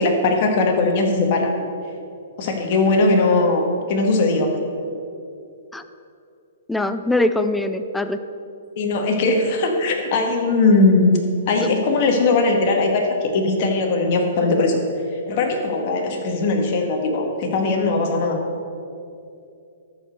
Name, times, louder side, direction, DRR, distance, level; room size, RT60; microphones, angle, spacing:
voice 1, 0.0-1.5 2.4-4.5 8.8-11.2 11.5-14.8 15.3-18.4, left 3 dB, 45° left, 2 dB, 1.8 m, -19 dB
voice 2, 6.7-8.2, left 2 dB, 5° left, 10 dB, 0.4 m, -22 dB
13.0 x 5.3 x 6.6 m, 2.6 s
hypercardioid pair, 135°, 0 cm